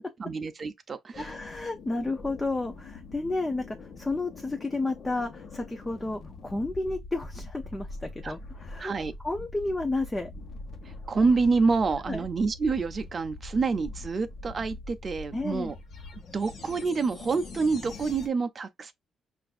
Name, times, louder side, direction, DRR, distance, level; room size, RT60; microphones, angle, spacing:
voice 1, 0.2-1.3 8.2-8.3 8.8-9.1 10.8-15.7 16.3-18.9, right 4 dB, 35° right, 0.5 m, -27 dB
sound 1, 1.1-18.3, left 2 dB, 55° left, 1.0 m, -43 dB
voice 2, 1.2-8.9 9.2-10.3 12.1-12.2 15.3-15.7, left 2 dB, 15° left, 0.6 m, -32 dB
5.7 x 2.5 x 2.4 m
cardioid pair, 120°, 0 cm